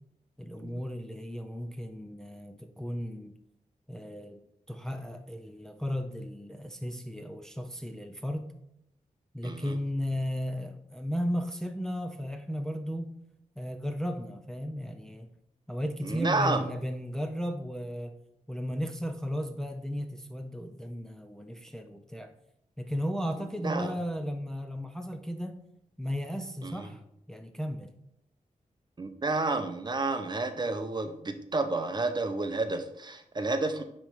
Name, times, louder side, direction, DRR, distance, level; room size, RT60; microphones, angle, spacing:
voice 1, 0.4-3.4 3.9-4.4 4.7-8.5 9.3-13.1 13.6-15.3 15.7-18.2 18.5-22.3 22.8-25.6 26.0-27.0 27.3-27.9, equal, 5° left, 0.5 m, -35 dB
voice 2, 9.4-9.8 16.0-16.6 23.6-24.0 26.6-26.9 29.0-33.8, right 3 dB, 35° right, 0.7 m, -30 dB
9.3 x 3.2 x 5.0 m
wide cardioid pair, 105°, 13 cm